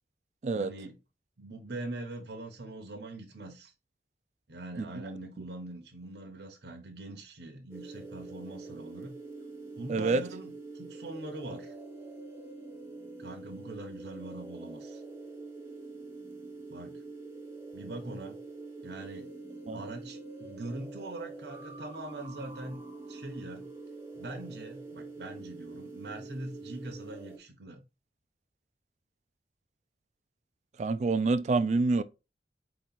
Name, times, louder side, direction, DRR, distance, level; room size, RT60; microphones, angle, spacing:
voice 1, 0.5-0.9 1.4-3.7 4.5-9.2 9.8-11.8 13.2-15.0 16.7-17.0 17.7-18.4 18.8-19.3 19.7-22.8 23.1-23.7 24.1-27.8, right 2 dB, 70° right, 0.8 m, -42 dB
sound 1, 7.7-27.4, right 3 dB, 15° right, 0.8 m, -45 dB
voice 2, 9.9-10.2 19.7-19.8 30.8-32.0, right 3 dB, 40° right, 0.3 m, -27 dB
4.6 x 2.9 x 3.9 m
head